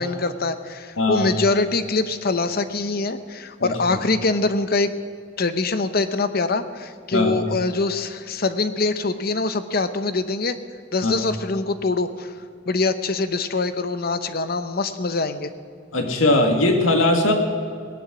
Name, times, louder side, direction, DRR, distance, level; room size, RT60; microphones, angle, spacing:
voice 1, 0.0-4.9 5.4-10.6 10.9-12.3 12.7-15.5, left 3 dB, 50° left, 11 dB, 0.8 m, -24 dB
voice 2, 1.0-1.3 3.6-3.7 7.1-7.3 11.0-11.1 15.9-17.3, left 2 dB, 85° left, 3 dB, 2.1 m, -19 dB
18.5 x 10.5 x 6.2 m, 2.3 s
head